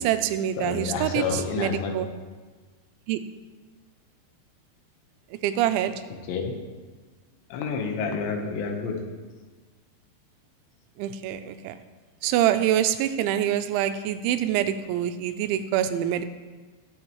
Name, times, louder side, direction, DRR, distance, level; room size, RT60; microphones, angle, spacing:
voice 1, 0.0-2.1 3.1-3.2 5.4-6.0 11.0-11.8 12.2-16.3, right 11 dB, 90° right, 10 dB, 3.0 m, -25 dB
voice 2, 0.6-2.0 6.3-6.5 7.5-9.0, left 5 dB, 75° left, 3 dB, 3.4 m, -29 dB
21.5 x 7.5 x 3.1 m, 1.4 s
omnidirectional pair, 5.3 m